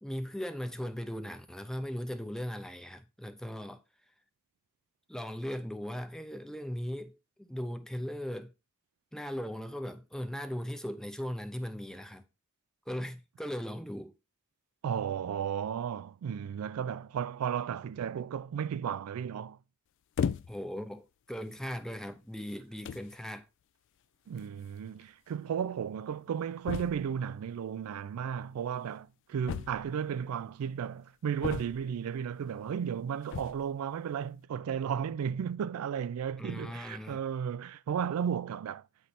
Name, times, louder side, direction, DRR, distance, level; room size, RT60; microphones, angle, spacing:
voice 1, 0.0-3.8 5.1-8.5 9.1-12.2 12.9-14.1 20.5-23.5 36.4-37.2, equal, 5° left, 0.5 m, -38 dB
voice 2, 14.8-19.6 24.3-38.8, right 8 dB, 85° right, 0.3 m, -34 dB
sound 1, 20.2-20.8 21.5-21.7 22.5-22.6 22.8-23.2 24.4-24.5 24.7-24.8 25.0-25.1 26.6-27.2 29.5-30.1 31.4-32.1 33.2-33.7, left 7 dB, 60° left, 0.3 m, -35 dB
9.0 x 3.2 x 4.1 m
head